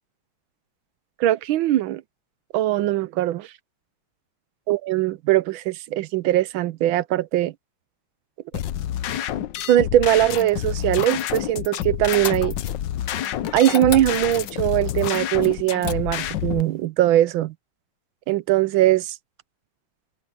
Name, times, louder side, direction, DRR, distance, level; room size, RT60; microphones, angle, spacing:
voice 1, 1.2-2.0 2.5-3.5 4.7-7.5 9.7-12.6 13.5-17.5 18.3-19.1, right 13 dB, 75° right, 1.4 m, -21 dB
sound 1, 8.5-16.6, left 11 dB, 65° left, 1.4 m, -28 dB
sound 2, 12.1-12.8 13.6-14.5 15.4-16.4, left 5 dB, 35° left, 1.1 m, -33 dB
omnidirectional pair, 2.3 m